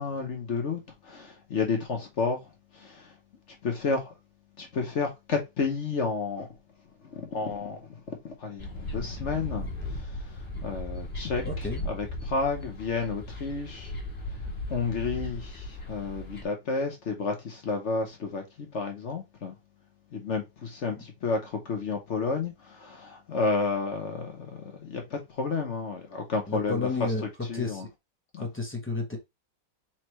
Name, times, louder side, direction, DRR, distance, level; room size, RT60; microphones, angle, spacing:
voice 1, 0.0-2.4 2.7-3.1 3.6-4.1 4.6-6.5 7.0-10.1 10.6-11.4 11.9-13.9 14.7-19.5 20.1-26.8 27.5-27.9 28.3-28.4, left 4 dB, 50° left, 0.9 m, -31 dB
sound 1, 8.6-16.4, left 1 dB, 35° left, 1.2 m, -37 dB
voice 2, 11.4-11.9 26.5-27.2 27.5-27.9 28.4-29.2, left 3 dB, 15° left, 0.4 m, -31 dB
4.3 x 3.2 x 3.0 m
omnidirectional pair, 2.0 m